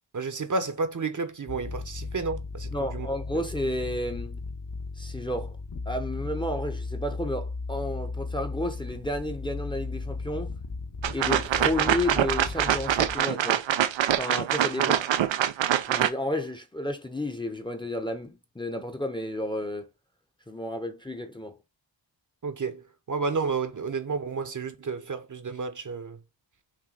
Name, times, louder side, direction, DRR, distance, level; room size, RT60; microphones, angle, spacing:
voice 1, 0.1-3.1 14.8-15.0 22.4-26.2, right 4 dB, 40° right, 0.8 m, -31 dB
sound 1, 1.5-13.2, left 3 dB, 45° left, 1.0 m, -36 dB
voice 2, 2.7-4.4 5.0-5.6 5.9-10.5 11.1-13.6 14.2-15.1 15.9-19.9 20.5-21.6, left 1 dB, 10° left, 0.8 m, -32 dB
sound 2, 11.0-16.1, right 11 dB, 80° right, 0.6 m, -24 dB
6.1 x 2.2 x 3.9 m
cardioid pair, 70°, 45 cm